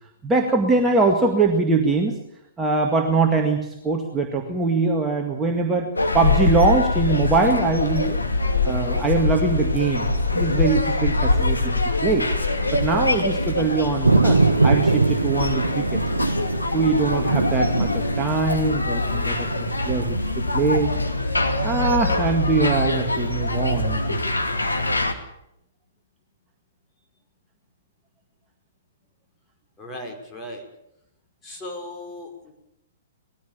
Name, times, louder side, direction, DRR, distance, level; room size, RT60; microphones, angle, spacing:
voice 1, 0.2-2.2 2.6-8.2 8.6-12.3 12.7-16.0 16.7-20.2 20.5-20.9 21.6-24.2, right 4 dB, 10° right, 0 dB, 2.0 m, -22 dB
sound 1, 6.0-25.1, left 2 dB, 80° left, 2.5 m, -24 dB
sound 2, 14.0-20.7, right 3 dB, 75° right, 1.0 m, -22 dB
voice 2, 29.8-30.6 31.4-32.5, left 1 dB, 15° left, 2 dB, 4.9 m, -37 dB
20.0 x 15.0 x 8.7 m, 0.80 s
figure-of-eight pair, 115°, 0 cm